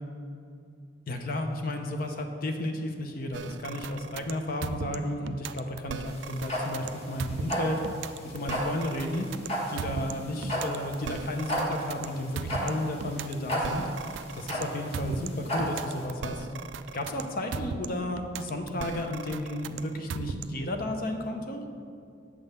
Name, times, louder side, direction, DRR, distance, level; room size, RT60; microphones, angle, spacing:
voice 1, 1.1-7.8 8.2-9.3 9.7-13.8 14.3-16.5 16.9-21.6, left 1 dB, 50° left, 4 dB, 0.7 m, -33 dB
sound 1, 3.3-20.7, right 5 dB, 70° right, 0.3 m, -38 dB
sound 2, 6.1-16.0, equal, 35° left, 1.5 m, -33 dB
8.2 x 3.8 x 6.6 m, 2.4 s
head